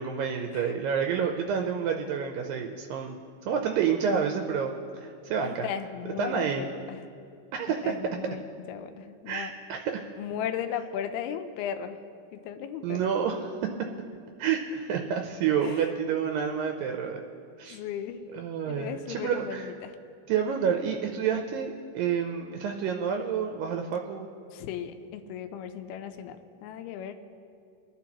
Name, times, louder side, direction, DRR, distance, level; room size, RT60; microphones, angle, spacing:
voice 1, 0.0-3.1 3.4-5.7 6.2-6.7 7.5-7.9 9.3-10.1 12.8-13.7 14.4-17.2 17.6-17.8 18.3-19.7 20.3-24.3, right 7 dB, 80° right, 3 dB, 2.1 m, -29 dB
voice 2, 5.4-7.0 7.8-8.4 8.7-9.5 10.2-12.0 12.3-13.1 15.6-15.9 17.7-18.2 18.7-19.9 24.5-27.1, left 8 dB, 90° left, 8 dB, 2.6 m, -36 dB
24.0 x 10.0 x 2.9 m, 2.5 s
omnidirectional pair, 4.5 m